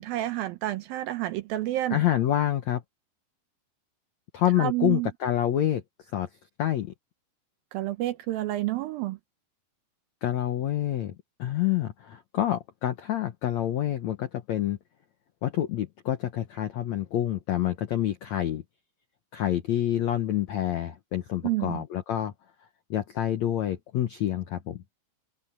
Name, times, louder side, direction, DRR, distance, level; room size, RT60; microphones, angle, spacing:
voice 1, 0.0-2.0 4.6-5.1 7.7-9.2 21.4-21.8, right 15 dB, 75° right, 2.3 m, -29 dB
voice 2, 1.9-2.8 4.3-5.8 6.1-6.3 6.6-6.9 10.2-11.1 11.4-14.8 15.4-18.6 19.3-22.3 22.9-24.8, left 12 dB, 75° left, 1.6 m, -27 dB
omnidirectional pair, 4.7 m